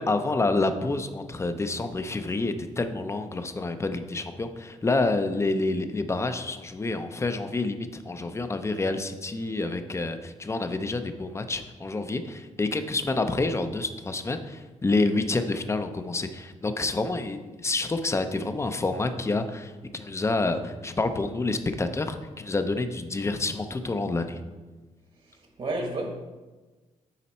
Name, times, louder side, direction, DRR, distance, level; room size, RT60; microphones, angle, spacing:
voice 1, 0.0-24.4, left 3 dB, 20° left, 8 dB, 0.6 m, -28 dB
voice 2, 25.2-26.1, right 2 dB, 50° right, 2 dB, 1.5 m, -32 dB
9.9 x 4.1 x 4.2 m, 1.2 s
cardioid pair, 90°, 13 cm